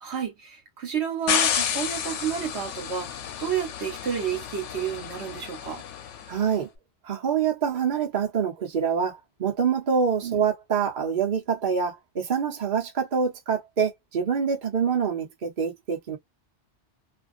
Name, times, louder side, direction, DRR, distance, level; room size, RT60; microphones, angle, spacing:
voice 1, 0.0-3.1 3.4-5.8 10.2-10.4, right 8 dB, 65° right, 1.2 m, -30 dB
sound 1, 1.3-6.4, left 9 dB, 85° left, 0.9 m, -30 dB
voice 2, 6.3-6.7 7.0-16.2, right 6 dB, 45° right, 1.0 m, -26 dB
2.5 x 2.3 x 2.4 m
omnidirectional pair, 1.2 m